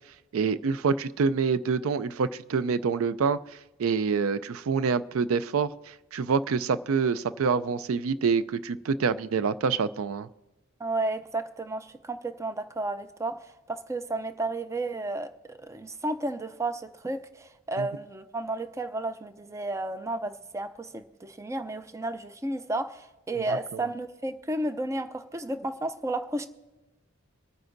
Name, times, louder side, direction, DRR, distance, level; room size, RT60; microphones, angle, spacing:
voice 1, 0.3-3.4 3.8-10.3 17.8-17.9 23.4-23.5, right 5 dB, 85° right, 15 dB, 0.4 m, -26 dB
voice 2, 10.8-26.5, right 2 dB, 15° right, 10 dB, 0.5 m, -32 dB
25.0 x 9.4 x 2.6 m, 1.1 s
head